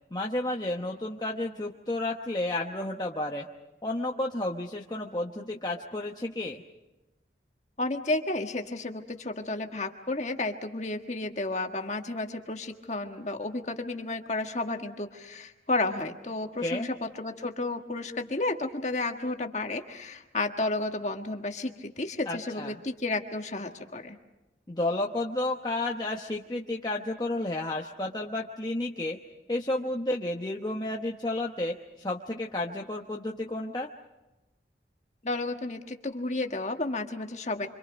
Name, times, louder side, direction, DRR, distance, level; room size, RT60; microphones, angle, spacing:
voice 1, 0.1-3.5 3.8-6.6 16.6-16.9 22.3-22.8 24.7-29.2 29.5-33.9, left 1 dB, 20° left, -1 dB, 1.0 m, -31 dB
voice 2, 7.8-24.2 35.2-37.7, left 2 dB, 40° left, 4 dB, 1.6 m, -32 dB
28.5 x 25.0 x 5.2 m, 1.0 s
head